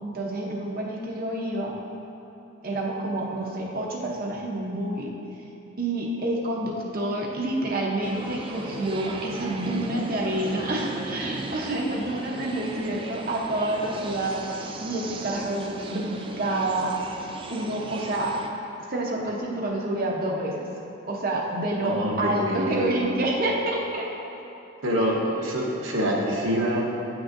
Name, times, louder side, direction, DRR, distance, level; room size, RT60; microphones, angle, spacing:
voice 1, 0.0-1.7 2.6-5.1 5.8-17.0 17.5-18.4 18.9-20.7 21.0-24.1 25.0-25.1, right 1 dB, 45° right, -2 dB, 0.8 m, -28 dB
sound 1, 8.0-18.5, right 2 dB, 25° right, 0.3 m, -36 dB
voice 2, 21.8-23.2 24.8-26.9, equal, 70° right, -2 dB, 1.0 m, -26 dB
9.1 x 6.1 x 2.6 m, 2.9 s
head